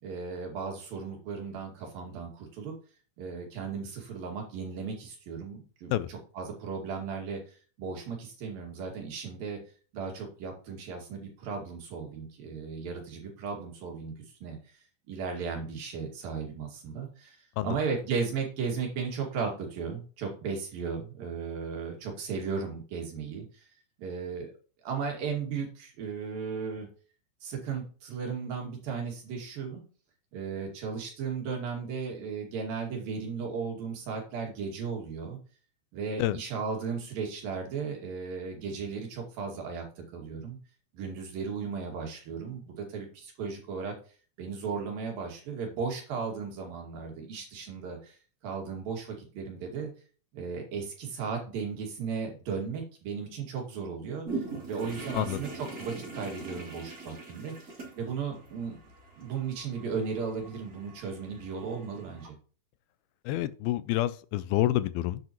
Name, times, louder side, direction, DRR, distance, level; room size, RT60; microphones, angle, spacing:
voice 1, 0.0-2.7 3.2-9.6 9.9-14.1 14.4-14.6 15.1-17.4 17.6-23.6 24.0-24.5 24.8-26.9 27.4-29.8 30.3-35.4 35.9-40.6 40.9-43.9 44.4-48.2 48.4-49.9 50.3-58.8 59.2-62.4, right 5 dB, 70° right, 3.9 m, -36 dB
sound 1, 54.2-62.3, right 3 dB, 25° right, 3.0 m, -42 dB
voice 2, 63.3-65.2, left 14 dB, 85° left, 2.4 m, -28 dB
10.5 x 8.2 x 3.0 m
omnidirectional pair, 4.4 m